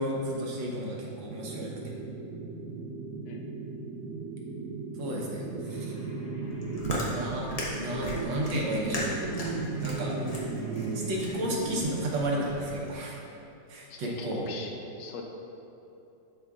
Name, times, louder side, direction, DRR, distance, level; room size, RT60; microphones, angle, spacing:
voice 1, 0.0-1.9 5.0-6.0 7.1-7.5 7.7-9.3 9.8-10.2 10.9-13.2 13.7-14.4, right 1 dB, 90° right, -2 dB, 1.8 m, -33 dB
sound 1, 1.3-11.8, right 3 dB, 70° right, 1.0 m, -36 dB
sound 2, 5.6-12.8, right 2 dB, 15° left, 1.0 m, -46 dB
Chewing mastication, 6.4-12.9, left 1 dB, 30° left, 0.7 m, -38 dB
voice 2, 13.9-15.2, left 4 dB, 75° left, 2 dB, 1.3 m, -42 dB
11.0 x 4.4 x 2.4 m, 2.9 s
omnidirectional pair, 2.0 m